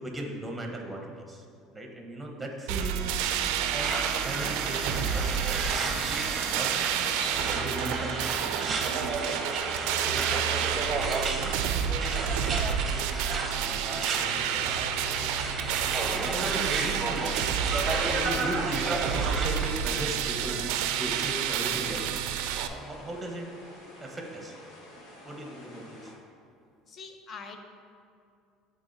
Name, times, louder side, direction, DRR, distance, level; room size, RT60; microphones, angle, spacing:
voice 1, 0.0-1.4 1.7-6.8 7.3-8.6 8.9-9.4 10.0-13.1 13.6-14.7 16.1-17.4 17.9-22.2 22.5-23.5 24.0-24.6 25.2-26.1, right 1 dB, 10° right, 1 dB, 1.1 m, -38 dB
sound 1, 2.7-22.7, right 8 dB, 75° right, 0.4 m, -30 dB
sound 2, 3.8-19.7, right 3 dB, 30° right, 0.8 m, -33 dB
sound 3, 6.5-26.2, left 1 dB, 65° left, 1.4 m, -50 dB
voice 2, 26.9-27.6, left 5 dB, 40° left, 4 dB, 0.7 m, -44 dB
11.0 x 3.8 x 2.7 m, 2.4 s
supercardioid pair, 105°, 0 cm